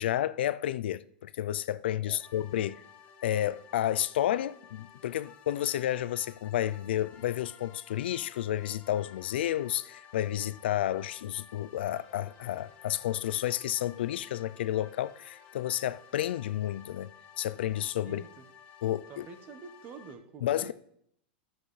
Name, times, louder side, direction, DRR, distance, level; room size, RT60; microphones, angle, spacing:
voice 1, 0.0-2.7 3.2-17.1 17.4-18.2 18.8-19.3 20.4-20.7, left 12 dB, 75° left, 0.4 m, -31 dB
sound 1, 2.2-20.1, left 8 dB, 30° left, 2.1 m, -54 dB
voice 2, 18.0-18.5 19.1-20.7, right 5 dB, 30° right, 1.0 m, -47 dB
10.5 x 7.8 x 3.2 m
supercardioid pair, 145°, 6 cm